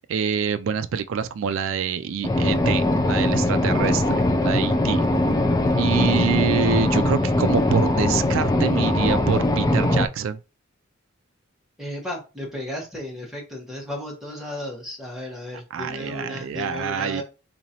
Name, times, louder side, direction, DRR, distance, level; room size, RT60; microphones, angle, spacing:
voice 1, 0.1-4.0 4.4-5.0 5.8-10.4 15.7-17.2, right 7 dB, 70° right, 0.3 m, -25 dB
sound 1, 2.2-10.1, left 1 dB, 15° left, 0.4 m, -21 dB
voice 2, 11.8-17.2, left 1 dB, ahead, 1.2 m, -34 dB
3.8 x 3.0 x 2.8 m
head